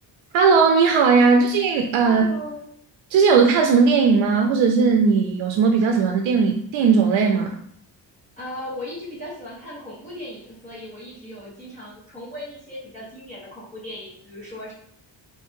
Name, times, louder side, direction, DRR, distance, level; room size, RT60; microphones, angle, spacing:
voice 1, 0.3-2.2 3.1-7.6, right 5 dB, 90° right, 4 dB, 0.5 m, -17 dB
voice 2, 2.0-2.6 8.4-14.7, left 1 dB, 15° left, -9 dB, 1.2 m, -37 dB
3.3 x 2.7 x 3.5 m, 0.66 s
wide cardioid pair, 165°, 45 cm